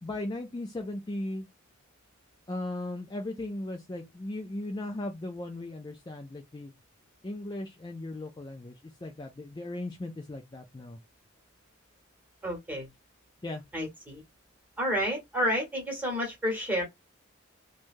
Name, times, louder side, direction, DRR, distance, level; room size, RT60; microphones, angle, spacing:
voice 1, 0.0-1.5 2.5-6.7 7.2-11.0 13.4-13.6, left 1 dB, 20° left, 0.3 m, -37 dB
voice 2, 12.4-12.9 13.7-14.2 14.8-16.8, equal, 10° right, 1.3 m, -30 dB
3.1 x 2.2 x 2.5 m
head